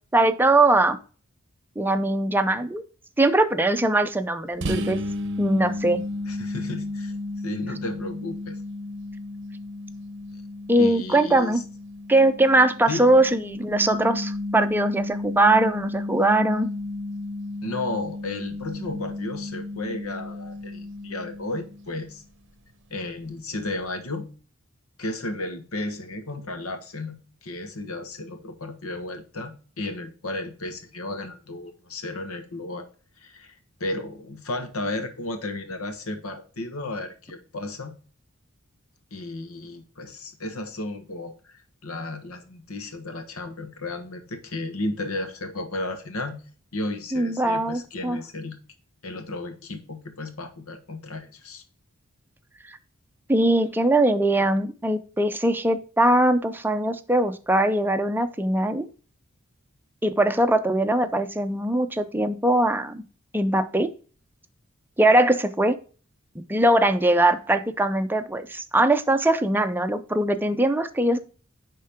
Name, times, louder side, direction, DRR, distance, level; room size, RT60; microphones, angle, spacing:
voice 1, 0.1-1.0 1.8-2.8 3.2-5.0 5.4-6.0 10.7-11.6 12.1-16.7 47.1-48.2 53.3-58.9 60.0-63.0 63.3-63.9 65.0-65.8 66.5-71.2, right 1 dB, 10° right, 8 dB, 0.6 m, -21 dB
sound 1, 4.6-22.1, left 2 dB, 55° right, 0.7 m, -33 dB
voice 2, 6.3-7.2 7.4-8.6 10.8-11.6 12.9-13.3 17.6-22.2 22.9-24.3 25.0-32.9 33.2-33.5 33.8-37.9 39.1-46.4 46.7-48.6 49.0-51.6, left 2 dB, 85° left, 7 dB, 1.4 m, -33 dB
10.0 x 3.8 x 3.5 m, 0.38 s
head